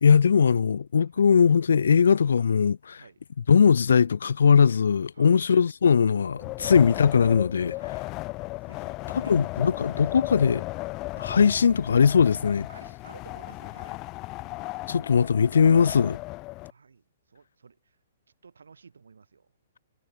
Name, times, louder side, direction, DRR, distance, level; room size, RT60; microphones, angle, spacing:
voice 1, 0.0-3.0 3.5-7.7 9.3-10.6 11.2-12.7 14.9-16.2, left 6 dB, 70° left, 0.6 m, -20 dB
voice 2, 5.1-5.5 6.6-6.8 7.6-10.4 12.7-14.0 16.6-18.0 18.4-19.5, right 5 dB, 75° right, 7.3 m, -53 dB
Wind, 6.3-16.7, left 22 dB, 30° left, 0.9 m, -36 dB
figure-of-eight pair, 120°, 0 cm